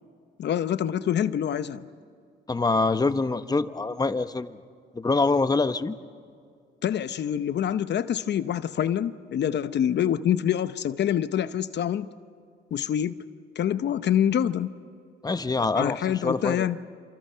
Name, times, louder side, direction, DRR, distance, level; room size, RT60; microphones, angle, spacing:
voice 1, 0.4-1.8 6.8-12.1 12.7-13.1 13.6-14.7 15.6-16.8, left 10 dB, 60° left, 12 dB, 0.8 m, -26 dB
voice 2, 2.5-4.6 4.9-5.9 15.2-16.7, left 3 dB, 20° left, 11 dB, 1.0 m, -25 dB
27.5 x 27.0 x 5.7 m, 2.2 s
cardioid pair, 90°, 20 cm